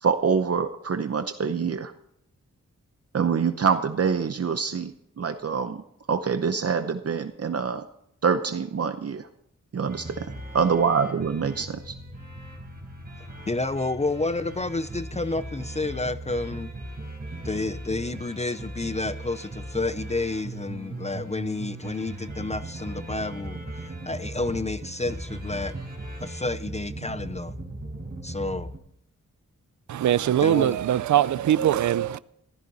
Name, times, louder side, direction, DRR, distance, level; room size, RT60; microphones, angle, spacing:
voice 1, 0.0-1.9 3.1-4.9 5.2-5.8 6.1-7.8 8.2-9.2 9.7-10.3 10.5-11.9, right 6 dB, 55° right, 0.8 m, -25 dB
sound 1, 9.9-28.8, right 1 dB, 30° right, 4.9 m, -38 dB
voice 2, 13.5-16.7 17.4-25.8 26.2-27.5 28.2-28.7 30.4-30.8, left 2 dB, 20° left, 0.5 m, -30 dB
voice 3, 29.9-32.2, right 11 dB, 75° right, 0.5 m, -22 dB
15.5 x 13.5 x 4.1 m
wide cardioid pair, 100°, 30 cm